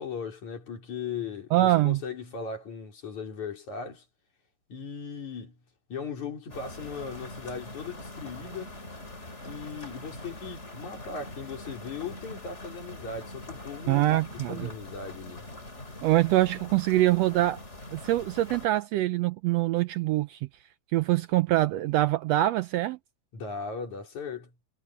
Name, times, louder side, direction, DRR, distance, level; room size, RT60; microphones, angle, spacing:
voice 1, 0.0-4.0 4.7-5.6 5.9-8.7 9.5-14.1 14.5-15.4 23.3-24.5, left 5 dB, 75° left, 6.0 m, -38 dB
voice 2, 1.5-2.0 13.9-14.7 16.0-17.6 17.9-20.4 20.9-23.0, right 15 dB, 80° right, 1.5 m, -24 dB
sound 1, 6.5-18.7, left 1 dB, 25° left, 3.4 m, -43 dB
omnidirectional pair, 3.4 m